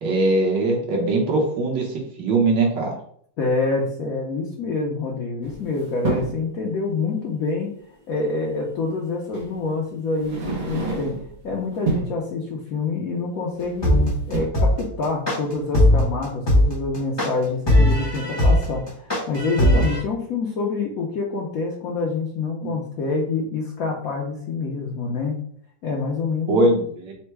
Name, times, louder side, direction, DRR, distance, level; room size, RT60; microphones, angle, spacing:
voice 1, 0.0-3.0 22.6-22.8 26.5-27.1, right 2 dB, 65° right, -1 dB, 1.6 m, -21 dB
voice 2, 3.4-7.7 8.1-11.2 11.4-14.0 14.3-25.4 25.8-26.6, left 3 dB, 60° left, -2 dB, 1.0 m, -26 dB
sound 1, 5.4-6.5 8.1-8.2 9.3-9.5 10.1-11.4 11.7-12.2 13.6-13.9 14.2-14.5, right 3 dB, 90° right, 1.7 m, -28 dB
sound 2, 13.8-20.0, left 1 dB, 25° left, 0.6 m, -18 dB
4.3 x 2.2 x 4.4 m, 0.62 s
omnidirectional pair, 2.1 m